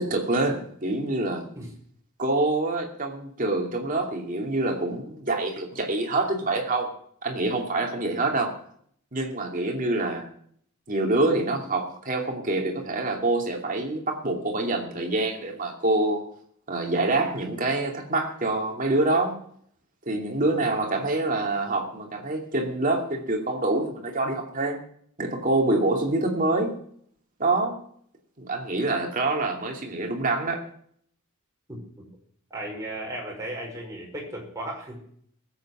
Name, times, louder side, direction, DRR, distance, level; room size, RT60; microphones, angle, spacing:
voice 1, 0.0-1.5 2.2-6.9 7.2-8.5 9.1-10.3 10.9-16.2 16.7-19.3 20.1-24.8 25.2-26.8 27.4-27.8 28.4-30.7, right 2 dB, 35° right, 2 dB, 2.6 m, -26 dB
voice 2, 31.7-32.1 32.5-35.0, right 1 dB, 15° right, -2 dB, 5.2 m, -35 dB
19.5 x 8.3 x 6.2 m, 0.63 s
head